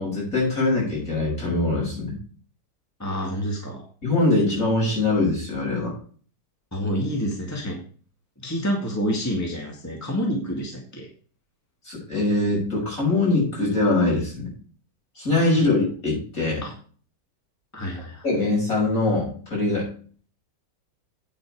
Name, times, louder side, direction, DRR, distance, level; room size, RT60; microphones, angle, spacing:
voice 1, 0.0-2.2 4.0-5.9 11.9-14.5 15.2-16.7 18.2-19.9, left 2 dB, 50° left, -4 dB, 7.0 m, -23 dB
voice 2, 3.0-3.8 6.7-7.8 8.4-11.1 15.6-15.7 16.6-16.7 17.7-18.2, equal, 10° left, 0 dB, 2.0 m, -28 dB
9.1 x 8.4 x 4.9 m, 0.43 s
omnidirectional pair, 1.9 m